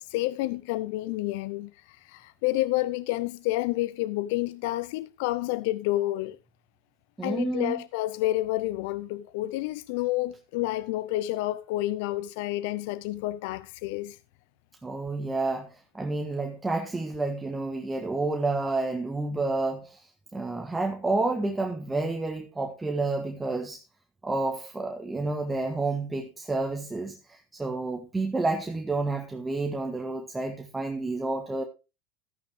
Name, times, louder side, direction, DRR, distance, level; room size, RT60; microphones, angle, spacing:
voice 1, 0.0-6.4 7.2-14.2, left 17 dB, 70° left, 0.5 m, -29 dB
voice 2, 7.2-7.8 14.8-23.8 24.2-31.6, right 3 dB, 10° right, 1.4 m, -30 dB
13.5 x 9.1 x 3.6 m
hypercardioid pair, 100°, 0 cm